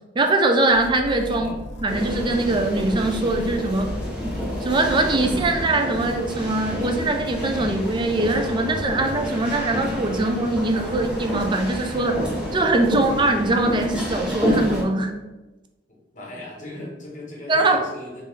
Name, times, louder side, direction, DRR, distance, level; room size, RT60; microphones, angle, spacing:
voice 1, 0.2-1.5 1.8-4.0 4.6-12.2 12.5-15.1 17.5-17.8, right 2 dB, 25° right, 4 dB, 0.4 m, -22 dB
sound 1, 0.7-5.6, equal, 85° left, 0.5 m, -36 dB
sound 2, 1.9-14.8, equal, 5° right, 0.7 m, -28 dB
voice 2, 15.9-18.2, left 1 dB, 45° left, -4 dB, 1.2 m, -38 dB
3.7 x 2.5 x 3.2 m, 1.1 s
head